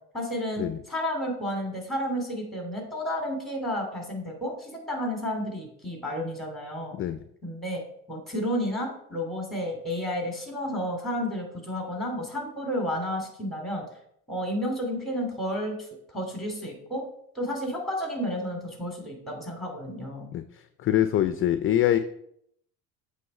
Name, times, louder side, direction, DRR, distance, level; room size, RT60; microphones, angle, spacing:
voice 1, 0.1-6.9 7.4-7.8 8.1-13.8 14.3-17.0 17.3-20.3, equal, ahead, 1 dB, 2.6 m, -31 dB
voice 2, 6.9-7.2 20.3-22.0, left 12 dB, 30° left, 11 dB, 0.4 m, -24 dB
7.6 x 3.2 x 5.3 m, 0.73 s
supercardioid pair, 90°, 42 cm